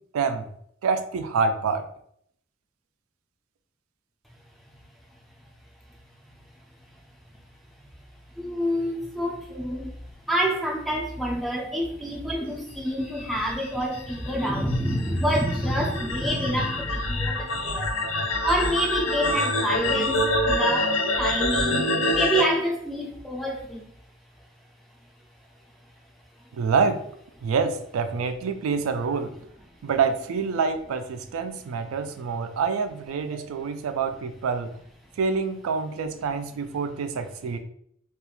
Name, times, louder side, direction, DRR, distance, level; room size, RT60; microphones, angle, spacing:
voice 1, 0.1-0.5 0.8-1.8 26.6-27.0 27.4-29.3 29.8-34.7 35.2-37.6, right 5 dB, 90° right, 8 dB, 0.3 m, -26 dB
voice 2, 8.4-9.9 10.3-23.8 33.3-33.4, equal, ahead, 0 dB, 0.3 m, -27 dB
sound 1, 13.1-22.4, left 1 dB, 75° left, 0.6 m, -26 dB
2.4 x 2.3 x 2.9 m, 0.68 s
head